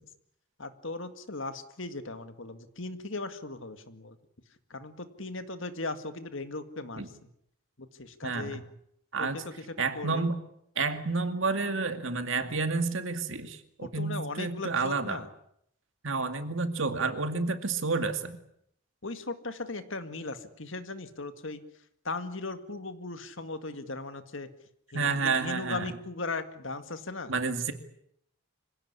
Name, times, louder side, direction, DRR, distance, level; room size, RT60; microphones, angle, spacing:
voice 1, 0.6-4.2 4.7-7.0 7.8-8.6 9.2-10.3 13.8-15.3 19.0-21.6 22.0-24.5 24.9-27.3, left 3 dB, 60° left, 10 dB, 2.0 m, -38 dB
voice 2, 8.2-8.6 9.1-9.4 9.8-10.4 10.8-15.2 16.0-18.4 24.9-26.0 27.3-27.7, right 4 dB, 60° right, 8 dB, 2.3 m, -30 dB
25.5 x 17.0 x 9.8 m, 0.73 s
head